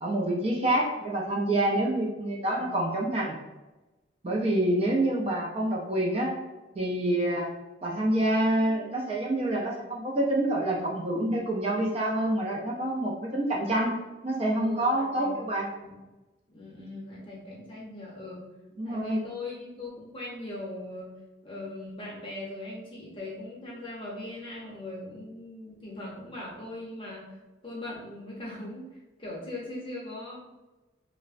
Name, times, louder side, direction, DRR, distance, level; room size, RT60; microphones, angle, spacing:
voice 1, 0.0-3.3 4.2-6.3 6.8-7.5 7.8-14.0 14.2-15.7 18.8-19.2, right 1 dB, 30° right, -2 dB, 0.3 m, -27 dB
voice 2, 2.6-3.0 14.6-15.4 15.8-16.0 16.5-18.4 18.8-21.1 21.4-27.4 27.6-30.4, left 1 dB, 25° left, -5 dB, 0.7 m, -40 dB
3.1 x 2.0 x 2.4 m, 1.1 s
head